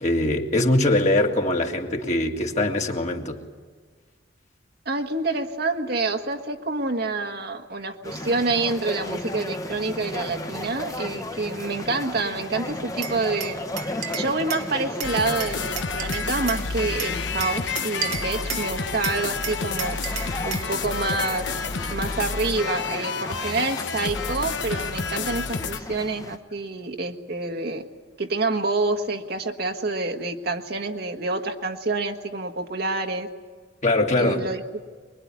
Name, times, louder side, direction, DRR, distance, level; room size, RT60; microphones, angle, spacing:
voice 1, 0.0-3.4 33.8-34.5, left 1 dB, 40° left, 2 dB, 2.2 m, -22 dB
voice 2, 4.8-13.6 14.1-20.0 20.4-21.5 21.9-27.8 28.2-33.3 34.2-34.8, right 3 dB, 55° right, 5 dB, 1.6 m, -27 dB
sound 1, 8.0-26.4, left 1 dB, 20° left, 1.2 m, -35 dB
Glass, 13.0-14.7 15.0-16.6 17.0-18.7 19.0-20.7, right 8 dB, 85° right, 2.1 m, -33 dB
sound 2, 15.0-25.8, left 5 dB, 70° left, 1.0 m, -30 dB
24.0 x 21.5 x 9.6 m, 1.5 s
head